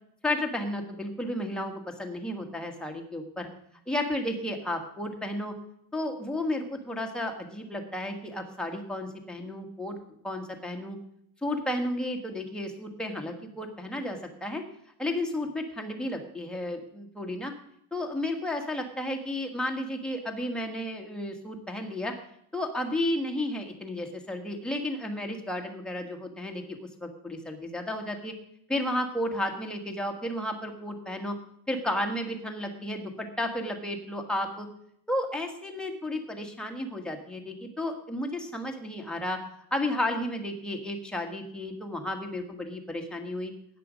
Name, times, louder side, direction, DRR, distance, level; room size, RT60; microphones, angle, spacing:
voice 1, 0.2-1.7 2.0-3.5 3.9-5.5 5.9-9.9 10.2-11.0 11.4-14.6 15.0-17.5 17.9-22.1 22.5-28.3 28.7-31.3 31.7-34.7 35.1-39.4 39.7-43.5, left 1 dB, ahead, 2 dB, 1.4 m, -32 dB
13.5 x 9.5 x 5.0 m, 0.70 s
cardioid pair, 170°, 41 cm